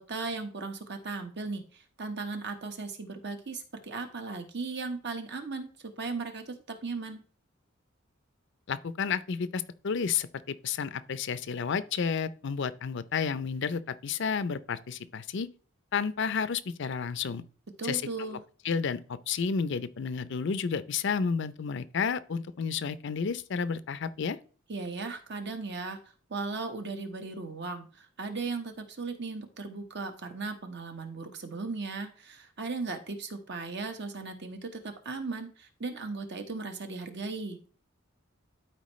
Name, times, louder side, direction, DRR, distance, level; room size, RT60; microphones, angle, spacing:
voice 1, 0.0-7.2 17.8-18.4 24.7-26.0 26.3-37.6, right 3 dB, 55° right, 1.2 m, -37 dB
voice 2, 8.7-15.5 15.9-17.4 17.8-18.0 18.6-24.4, left 6 dB, 60° left, 0.5 m, -31 dB
12.5 x 4.5 x 3.1 m
head